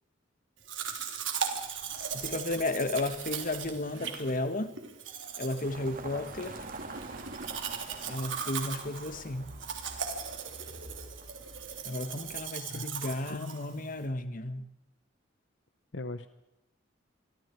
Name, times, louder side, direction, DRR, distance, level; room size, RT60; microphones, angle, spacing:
Domestic sounds home sounds, 0.7-14.1, right 7 dB, 80° right, 3.4 m, -38 dB
voice 1, 2.1-4.7 5.4-6.6 8.1-9.5 11.8-14.7, left 2 dB, 45° left, 1.5 m, -33 dB
sound 1, 5.6-12.5, right 2 dB, 50° right, 2.7 m, -46 dB
voice 2, 12.7-13.9 15.9-16.3, left 2 dB, 70° left, 0.9 m, -41 dB
28.0 x 23.5 x 4.7 m
head